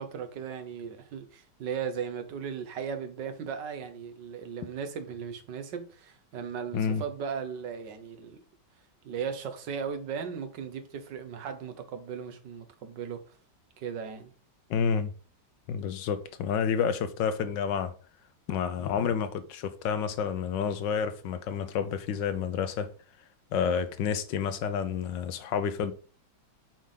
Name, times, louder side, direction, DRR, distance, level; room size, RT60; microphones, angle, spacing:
voice 1, 0.0-8.4 9.1-13.3 13.8-14.3, right 7 dB, 65° right, 1.7 m, -37 dB
voice 2, 14.7-15.1 15.7-17.9 18.5-22.9 23.5-25.9, left 7 dB, 70° left, 1.3 m, -29 dB
7.4 x 3.6 x 5.6 m
omnidirectional pair, 2.2 m